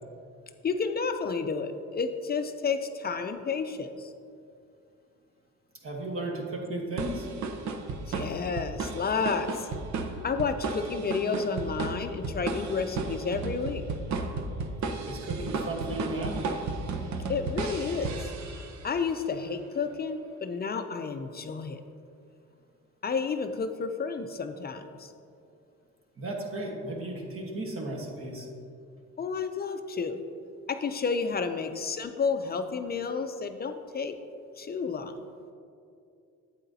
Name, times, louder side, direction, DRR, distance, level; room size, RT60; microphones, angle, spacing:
voice 1, 0.6-4.1 8.0-9.7 10.2-13.8 17.3-18.1 18.8-21.8 23.0-25.1 29.2-30.2 30.7-34.1 34.6-35.2, left 5 dB, 30° left, 8 dB, 0.4 m, -31 dB
voice 2, 5.8-7.3 15.1-16.4 26.2-28.5, right 1 dB, 45° right, 1 dB, 1.3 m, -34 dB
sound 1, 7.0-18.9, right 3 dB, 65° right, 0.8 m, -34 dB
8.4 x 8.0 x 2.7 m, 2.5 s
cardioid pair, 90°, 30 cm